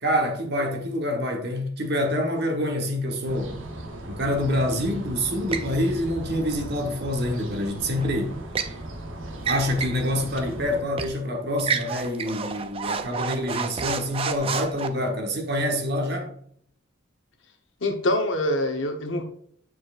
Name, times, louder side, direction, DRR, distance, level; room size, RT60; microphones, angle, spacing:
voice 1, 0.0-3.6 4.1-8.4 9.4-16.3, left 1 dB, 55° right, 1.1 m, -26 dB
sound 1, 3.3-10.8, right 1 dB, 75° right, 0.9 m, -37 dB
sound 2, 5.5-5.7 7.9-8.8 9.4-10.0 10.4-10.5 11.0-11.2 11.6-14.9, right 5 dB, 30° right, 0.4 m, -30 dB
voice 2, 17.8-19.2, left 1 dB, 65° left, 1.0 m, -25 dB
8.4 x 4.7 x 2.4 m
head